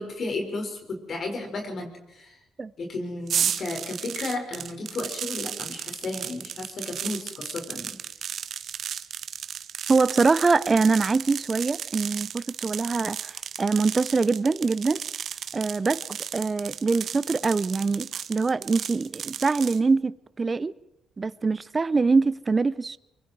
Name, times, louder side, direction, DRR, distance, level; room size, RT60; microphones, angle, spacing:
voice 1, 0.0-2.4 2.8-8.0, left 2 dB, 50° left, 6.1 m, -33 dB
sound 1, 3.3-19.8, right 8 dB, 60° right, 1.3 m, -34 dB
voice 2, 9.9-15.0 15.5-20.7 21.2-23.0, right 4 dB, 30° right, 0.7 m, -24 dB
24.5 x 23.5 x 4.8 m
cardioid pair, 90°, 0 cm